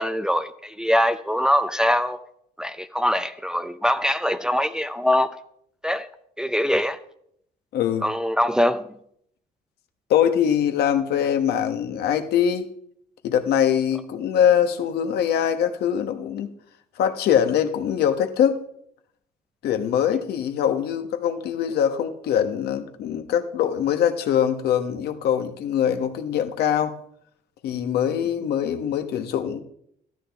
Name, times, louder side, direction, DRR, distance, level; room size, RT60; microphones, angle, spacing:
voice 1, 0.0-2.2 2.6-5.3 5.8-6.1 6.4-7.0 8.0-8.9, equal, 5° right, 0.6 m, -23 dB
voice 2, 7.7-8.0 10.1-12.7 13.2-16.5 17.0-18.6 19.6-27.0 27.6-29.6, left 9 dB, 70° left, 1.2 m, -23 dB
14.0 x 12.5 x 3.5 m
cardioid pair, 110°, 17 cm